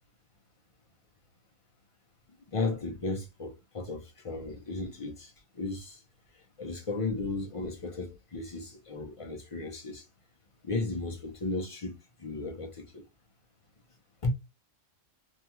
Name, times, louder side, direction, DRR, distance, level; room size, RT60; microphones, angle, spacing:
voice 1, 2.5-6.0 6.6-10.1 10.6-13.0 14.2-14.3, left 3 dB, 50° left, 0.4 m, -35 dB
2.7 x 2.3 x 2.8 m
omnidirectional pair, 1.3 m